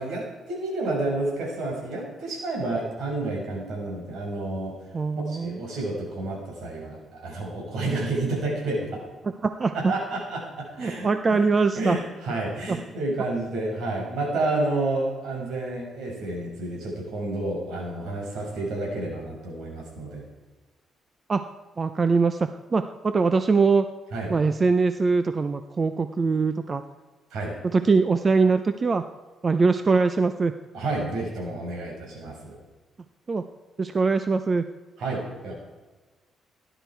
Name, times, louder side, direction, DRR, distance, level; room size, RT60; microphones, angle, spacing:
voice 1, 0.0-4.8 5.3-9.0 9.7-11.5 11.7-20.2 24.1-24.3 27.3-27.5 30.7-32.6 35.0-35.5, right 2 dB, 80° right, -1 dB, 5.9 m, -30 dB
voice 2, 4.9-5.6 9.4-9.7 10.8-12.0 21.3-21.4 21.8-23.9 24.3-26.8 27.7-29.0 29.4-30.5 33.3-33.4 33.8-34.6, right 4 dB, 35° right, 10 dB, 0.7 m, -22 dB
17.0 x 11.5 x 4.7 m, 1.3 s
cardioid pair, 90°, 0 cm